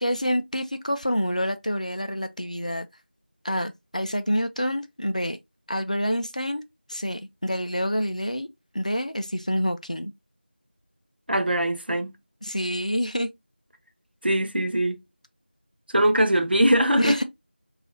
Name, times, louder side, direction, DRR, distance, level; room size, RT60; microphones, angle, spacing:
voice 1, 0.0-2.9 3.4-5.4 5.7-6.6 6.9-8.5 8.7-10.1 12.4-13.3 17.0-17.2, equal, 40° left, 0.4 m, -27 dB
voice 2, 11.3-12.1 14.2-15.0 15.9-17.2, right 1 dB, 65° right, 0.7 m, -21 dB
2.8 x 2.4 x 3.9 m
figure-of-eight pair, 175°, 6 cm